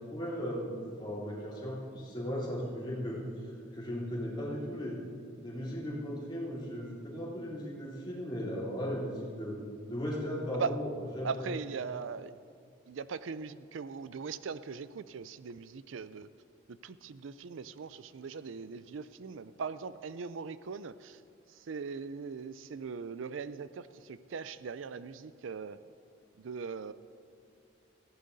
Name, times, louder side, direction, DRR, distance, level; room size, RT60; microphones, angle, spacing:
voice 1, 0.1-5.0 5.4-9.6 9.9-10.9 11.1-11.6, equal, 20° left, -5 dB, 3.3 m, -37 dB
voice 2, 11.2-12.3 12.9-16.3 16.7-21.2 21.5-25.8 26.4-26.9, right 5 dB, 75° right, 15 dB, 0.4 m, -40 dB
18.0 x 15.0 x 4.1 m, 2.3 s
head